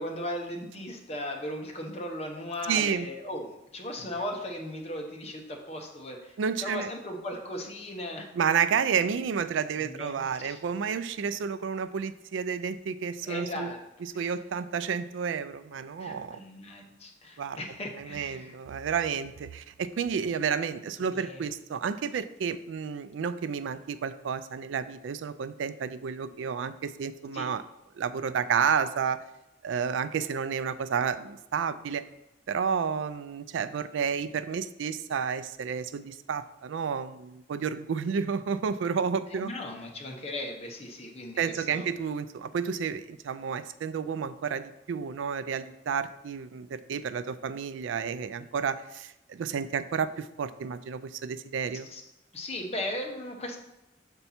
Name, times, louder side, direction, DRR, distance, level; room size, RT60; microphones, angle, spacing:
voice 1, 0.0-8.3 9.8-10.6 13.2-13.8 14.1-14.3 16.0-18.6 21.0-21.4 27.3-27.5 39.3-41.9 51.9-52.0 52.3-53.6, left 1 dB, 35° left, 1 dB, 1.0 m, -37 dB
voice 2, 2.7-3.1 6.4-6.9 8.3-13.7 14.0-16.4 17.4-17.6 18.0-27.6 28.0-29.2 29.6-32.0 32.5-39.5 41.4-51.9, right 6 dB, 80° right, 14 dB, 0.3 m, -31 dB
6.8 x 4.4 x 4.2 m, 0.92 s
head